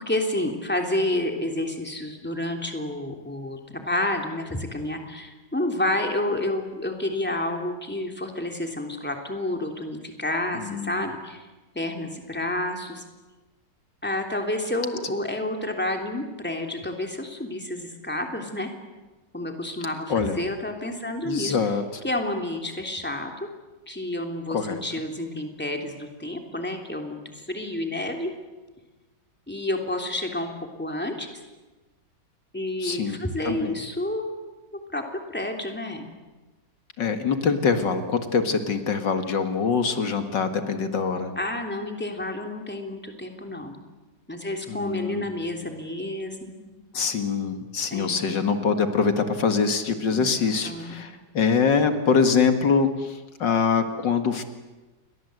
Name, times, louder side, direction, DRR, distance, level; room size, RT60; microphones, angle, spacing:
voice 1, 0.0-11.5 11.7-13.0 14.0-18.7 19.3-21.6 22.0-23.3 23.9-28.3 29.5-31.4 32.5-35.0 35.3-36.1 41.4-43.8 44.3-46.6 47.9-48.2 50.1-50.3 50.6-51.0, left 1 dB, 5° left, 3 dB, 3.2 m, -30 dB
voice 2, 10.6-11.0 20.1-20.4 21.2-22.0 24.5-24.8 32.8-33.7 37.0-41.3 44.7-45.2 45.6-45.7 46.9-54.4, left 5 dB, 80° left, 7 dB, 2.5 m, -24 dB
30.0 x 23.5 x 8.0 m, 1.2 s
omnidirectional pair, 1.9 m